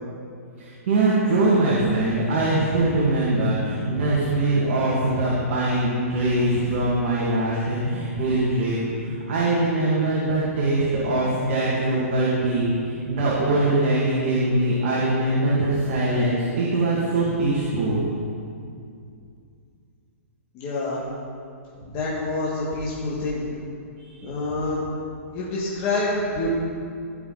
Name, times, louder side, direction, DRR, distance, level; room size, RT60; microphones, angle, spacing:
voice 1, 0.6-18.0 24.0-24.3, right 2 dB, 45° right, -6 dB, 1.9 m, -22 dB
voice 2, 20.5-21.0 21.9-23.5 24.2-24.9 25.3-26.5, left 2 dB, 25° left, -7 dB, 1.6 m, -27 dB
15.5 x 5.7 x 3.9 m, 2.4 s
hypercardioid pair, 165°, 8 cm